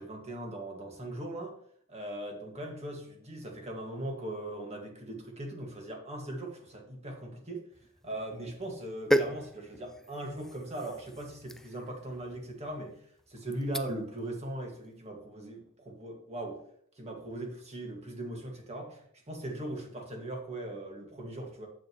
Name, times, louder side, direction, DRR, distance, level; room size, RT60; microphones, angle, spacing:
voice 1, 0.0-1.5 1.9-7.6 8.0-13.0 13.3-16.6 17.0-21.7, right 1 dB, 30° right, 1 dB, 1.7 m, -39 dB
sound 1, 7.7-14.2 14.6-14.9, equal, ahead, 0.3 m, -36 dB
9.1 x 7.5 x 3.0 m, 0.65 s
head